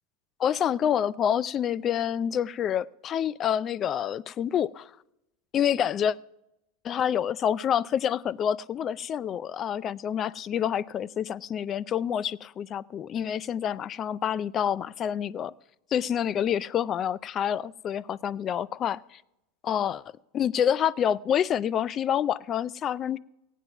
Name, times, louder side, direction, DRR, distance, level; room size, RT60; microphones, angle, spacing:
voice 1, 0.4-4.9 5.5-6.2 6.8-15.5 15.9-19.2 19.6-20.0 20.3-23.2, left 9 dB, 35° left, 0.4 m, -27 dB
15.5 x 9.2 x 5.9 m
hypercardioid pair, 105°, 0 cm